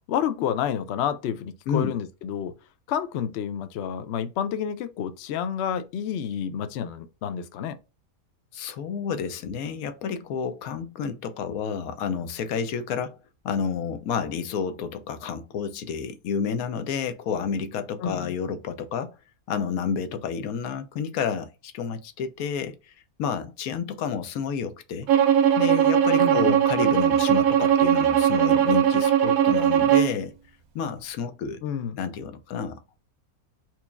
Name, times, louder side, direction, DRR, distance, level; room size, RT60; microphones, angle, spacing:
voice 1, 0.1-2.5 2.9-7.8 18.0-18.3 26.2-26.6 31.6-32.0, left 8 dB, 65° left, 0.7 m, -29 dB
voice 2, 8.5-13.2 13.4-19.1 19.5-22.9 23.2-25.1 25.6-30.3 30.7-31.6 32.0-33.0, left 6 dB, 85° left, 1.1 m, -30 dB
Bowed string instrument, 25.1-30.2, right 9 dB, 85° right, 1.1 m, -20 dB
4.5 x 2.7 x 2.2 m
omnidirectional pair, 1.5 m